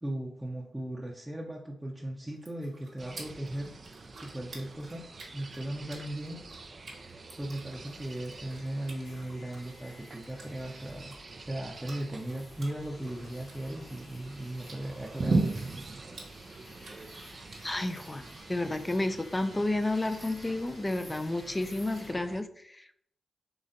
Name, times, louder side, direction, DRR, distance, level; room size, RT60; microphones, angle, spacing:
voice 1, 0.0-3.7 4.1-5.0 5.3-6.4 7.4-11.1 11.4-15.4, right 1 dB, 15° right, -3 dB, 0.7 m, -37 dB
sound 1, 2.3-18.4, right 3 dB, 70° right, 1.2 m, -54 dB
sound 2, 3.0-22.4, right 3 dB, 50° right, 0.4 m, -40 dB
sound 3, 7.9-22.1, left 2 dB, 55° left, 1.1 m, -55 dB
voice 2, 17.6-18.2 18.5-23.0, left 2 dB, 20° left, 9 dB, 0.4 m, -31 dB
3.9 x 3.2 x 2.6 m, 0.66 s
supercardioid pair, 45°, 0 cm